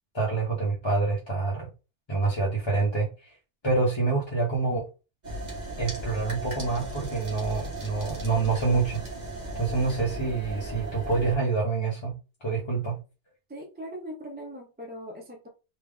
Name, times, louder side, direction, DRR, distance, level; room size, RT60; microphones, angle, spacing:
voice 1, 0.1-1.7 2.1-3.3 3.6-4.9 5.8-9.0 9.5-12.1 12.4-13.0, right 4 dB, 25° left, 0.8 m, -27 dB
sound 1, 5.2-11.4, right 2 dB, 40° right, 1.4 m, -36 dB
voice 2, 13.5-15.5, equal, 10° right, 0.5 m, -40 dB
3.6 x 2.3 x 3.5 m
omnidirectional pair, 1.2 m